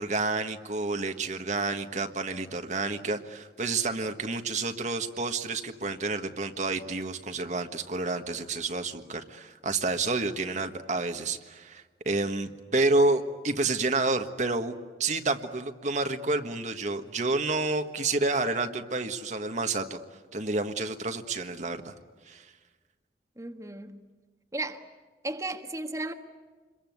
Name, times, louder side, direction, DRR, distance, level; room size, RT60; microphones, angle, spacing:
voice 1, 0.0-14.7 15.0-20.0 20.3-21.9 22.3-22.5, right 3 dB, 45° right, 1.5 m, -29 dB
voice 2, 23.4-23.9 24.5-24.8 25.2-26.1, right 2 dB, 20° right, 1.5 m, -34 dB
28.0 x 22.5 x 9.4 m
head